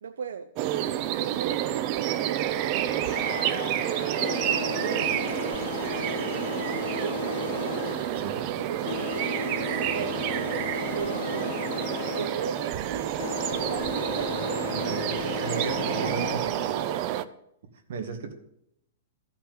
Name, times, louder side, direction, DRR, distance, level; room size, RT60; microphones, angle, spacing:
voice 1, 0.0-0.5 1.1-3.7 4.5-5.5 6.8-7.9 8.3-11.6 12.1-13.2 13.5-14.6 15.2-17.3, right 7 dB, 90° right, 11 dB, 0.6 m, -38 dB
sound 1, 0.6-17.2, right 12 dB, 35° right, 0.5 m, -29 dB
sound 2, 0.8-0.9 1.9-17.0, left 9 dB, 60° left, 0.5 m, -36 dB
voice 2, 14.7-16.6 17.9-18.3, right 5 dB, 60° right, 5 dB, 2.0 m, -35 dB
13.0 x 5.8 x 7.6 m, 0.77 s
hypercardioid pair, 165°, 0 cm